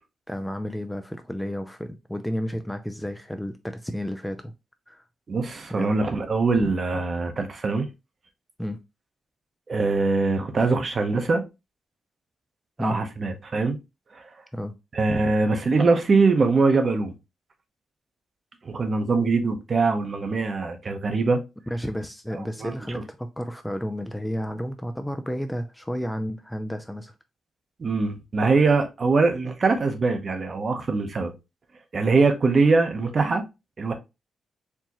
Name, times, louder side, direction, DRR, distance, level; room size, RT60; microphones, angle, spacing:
voice 1, 0.3-4.5 4.9-5.0 5.7-6.0 8.6-8.8 12.8-13.0 14.5-14.7 21.7-27.1, equal, 5° left, 0.4 m, -31 dB
voice 2, 5.3-7.9 9.7-11.4 12.8-13.8 14.1-14.2 14.9-17.1 18.6-21.4 22.6-23.0 27.8-31.3 31.9-33.4 33.8-33.9, right 3 dB, 40° right, 0.8 m, -22 dB
4.5 x 2.8 x 2.9 m
cardioid pair, 125°, 0 cm